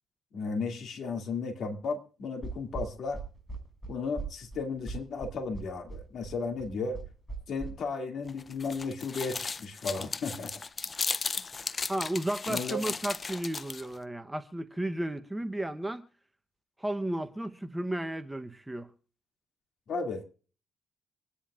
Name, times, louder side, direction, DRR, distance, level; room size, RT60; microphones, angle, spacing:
voice 1, 0.3-3.2 3.9-7.0 7.5-10.7 11.6-11.8 12.5-12.8 19.9-20.2, left 4 dB, 65° left, 2.4 m, -34 dB
sound 1, 2.4-7.7, right 3 dB, 10° left, 6.1 m, -39 dB
sound 2, 8.3-14.0, left 4 dB, 35° left, 0.5 m, -36 dB
voice 2, 11.9-16.1 16.8-18.9, right 1 dB, 10° right, 0.9 m, -33 dB
25.5 x 10.0 x 2.5 m
cardioid pair, 90°, 0 cm